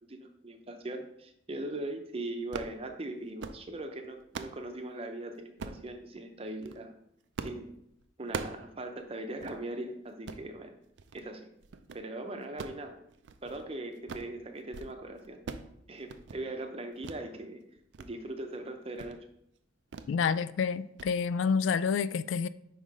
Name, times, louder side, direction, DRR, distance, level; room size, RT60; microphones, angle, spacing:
voice 1, 0.0-6.9 7.4-7.7 8.2-10.7 11.1-11.5 11.9-13.0 13.4-15.4 15.9-17.6 18.0-19.2, right 2 dB, 30° right, 0.7 m, -40 dB
sound 1, 2.4-2.8 3.2-3.6 4.0-4.6 5.6-5.9 6.5-6.8 7.4-7.6 7.9-8.7 9.0-9.1 9.4-9.6 10.1-10.5 11.0-11.3 11.6-12.0 12.4-13.7 13.9-14.3 14.6-14.9 15.2-15.7 16.0-16.4 17.0-17.2 17.6-18.1 18.4-18.6 19.0-19.2 19.9-20.2 20.5-20.7 21.0-21.1, right 4 dB, 70° right, 0.4 m, -42 dB
voice 2, 20.1-22.5, left 6 dB, 85° left, 0.3 m, -28 dB
5.3 x 3.8 x 4.8 m
head